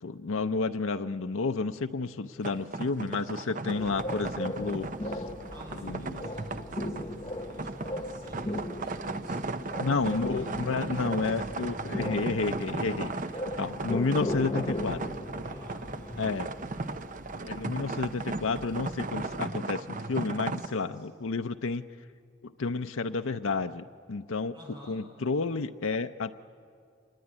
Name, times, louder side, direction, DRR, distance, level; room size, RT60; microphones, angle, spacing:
voice 1, 0.0-5.2 5.8-6.2 9.8-13.1 13.6-15.0 16.2-16.5 17.4-21.8 22.4-24.5 24.9-26.3, left 4 dB, 90° left, 8 dB, 0.6 m, -31 dB
sound 1, 2.4-20.7, right 3 dB, 40° right, 0.8 m, -37 dB
sound 2, 3.8-19.5, left 1 dB, 25° left, 1.2 m, -38 dB
voice 2, 5.5-11.5 15.4-16.4 20.6-21.1 24.5-25.0, equal, 25° right, -2 dB, 7.3 m, -53 dB
25.5 x 20.0 x 9.9 m, 2.3 s
head